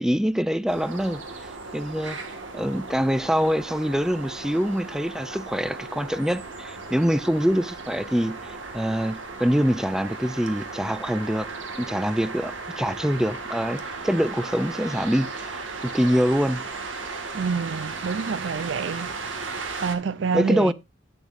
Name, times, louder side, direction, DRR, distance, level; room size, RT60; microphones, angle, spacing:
voice 1, 0.0-1.5 1.7-2.2 2.5-11.5 11.8-15.6 15.9-16.6 20.3-20.7, equal, 5° right, 0.4 m, -25 dB
sound 1, 0.7-20.0, right 3 dB, 90° right, 1.9 m, -36 dB
voice 2, 17.3-19.3 19.8-20.7, right 5 dB, 75° right, 0.4 m, -28 dB
11.5 x 9.0 x 2.5 m
head